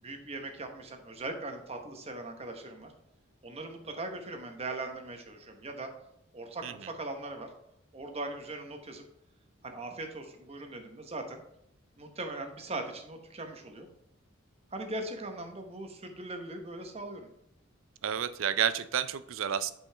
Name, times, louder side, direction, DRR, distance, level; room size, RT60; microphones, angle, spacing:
voice 1, 0.0-2.9 3.4-5.9 6.3-7.5 7.9-9.0 9.6-11.4 12.0-13.9 14.7-17.3, right 2 dB, 30° right, 5 dB, 1.0 m, -40 dB
voice 2, 18.0-19.7, right 8 dB, 75° right, 14 dB, 0.5 m, -30 dB
8.5 x 5.3 x 3.4 m, 0.77 s
head